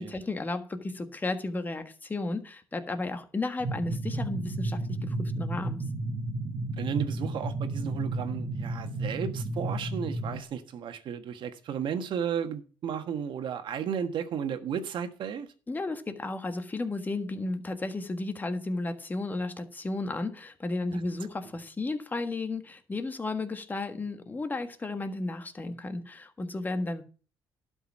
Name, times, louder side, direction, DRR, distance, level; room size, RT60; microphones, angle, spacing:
voice 1, 0.0-5.8 15.7-27.0, left 2 dB, 20° left, 1.5 m, -33 dB
sound 1, 3.6-10.4, right 2 dB, 30° right, 1.4 m, -32 dB
voice 2, 6.8-15.5 20.9-21.0, right 8 dB, 65° right, 1.4 m, -34 dB
12.0 x 5.4 x 7.3 m
cardioid pair, 115°, 9 cm